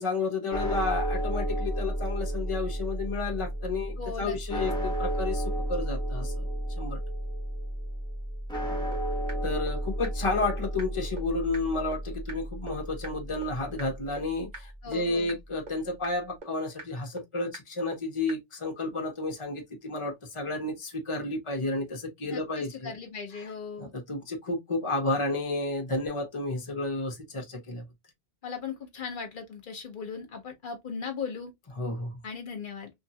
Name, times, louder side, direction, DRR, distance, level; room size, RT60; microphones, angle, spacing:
voice 1, 0.0-6.5 6.8-7.0 9.4-23.0 23.3-23.5 23.8-27.8 31.8-32.2, left 2 dB, 30° left, 0.9 m, -31 dB
sound 1, 0.5-14.7, right 1 dB, 5° left, 0.8 m, -32 dB
voice 2, 4.0-4.6 14.8-15.4 22.3-23.9 28.4-31.5 32.2-32.9, left 5 dB, 55° left, 1.0 m, -38 dB
sound 2, 8.5-8.6 8.9-9.0 9.3-9.4 9.7-9.8 10.0-10.1 10.4-10.5 10.8-10.9 11.2-11.3 11.5-11.6 11.9-12.0 12.3-12.4 12.7-12.8 13.0-13.1 13.4-13.5 13.8-13.9 14.2-14.3 14.5-14.6 14.9-15.0 15.3-15.4 15.7-15.8 16.0-16.1 16.4-16.5 16.8-16.9 17.2-17.3 17.5-17.6 17.9-18.0 18.3-18.4, right 2 dB, 45° right, 1.0 m, -41 dB
2.7 x 2.5 x 2.7 m
omnidirectional pair, 1.1 m